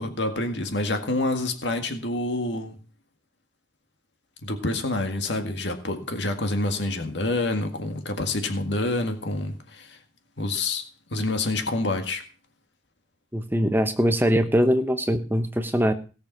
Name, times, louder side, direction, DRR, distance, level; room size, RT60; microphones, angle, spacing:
voice 1, 0.0-2.8 4.4-10.0 10.4-10.8 11.1-12.2, left 2 dB, 70° left, 6 dB, 2.0 m, -27 dB
voice 2, 13.3-15.9, equal, 10° right, 8 dB, 1.0 m, -22 dB
17.5 x 6.9 x 6.0 m, 0.36 s
head